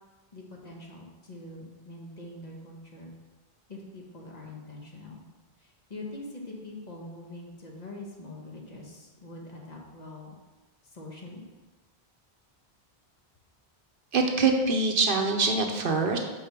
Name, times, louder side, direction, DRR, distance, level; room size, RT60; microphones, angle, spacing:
voice 1, 0.3-3.1 3.7-5.2 5.6-10.4 10.8-11.4, left 2 dB, 45° left, -2 dB, 1.1 m, -43 dB
voice 2, 14.1-16.2, right 3 dB, 60° right, 3 dB, 0.8 m, -24 dB
5.1 x 4.0 x 5.7 m, 1.2 s
omnidirectional pair, 1.1 m